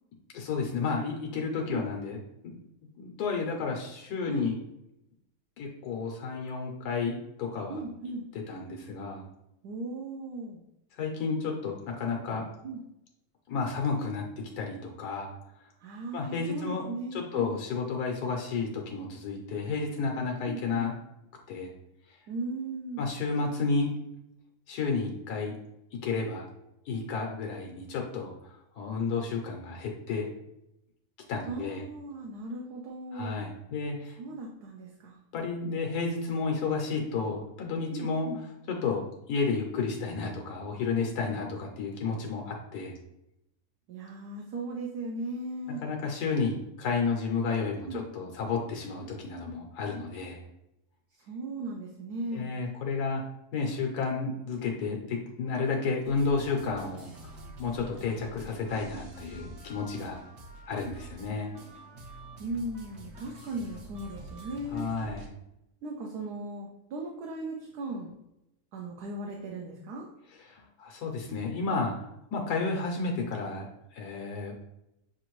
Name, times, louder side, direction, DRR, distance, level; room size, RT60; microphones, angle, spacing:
voice 1, 0.3-2.6 3.0-4.5 5.6-7.8 8.5-9.2 11.0-12.5 13.5-14.2 14.6-15.3 16.1-16.8 17.1-20.9 21.5-21.7 23.0-23.9 24.7-25.5 26.0-26.5 26.9-28.3 28.7-30.3 31.3-31.8 33.1-34.2 35.3-38.3 38.7-39.0 39.3-42.9 45.8-50.4 52.3-53.2 53.5-57.3 57.6-60.2 60.7-61.5 64.7-65.3 70.4-71.9 72.3-73.7 73.9-74.5, left 4 dB, 80° left, 1 dB, 1.3 m, -31 dB
voice 2, 7.7-8.2 9.6-10.6 12.6-12.8 15.8-17.5 20.5-20.9 22.3-23.1 31.5-33.5 34.2-35.1 37.9-38.4 43.9-45.8 47.9-48.1 51.3-52.5 62.4-64.9 65.8-68.2 68.7-70.1, right 2 dB, 75° right, -1 dB, 1.2 m, -37 dB
sound 1, 56.0-65.3, right 1 dB, 50° right, 1.0 m, -47 dB
6.8 x 2.6 x 3.0 m, 0.85 s
omnidirectional pair, 1.7 m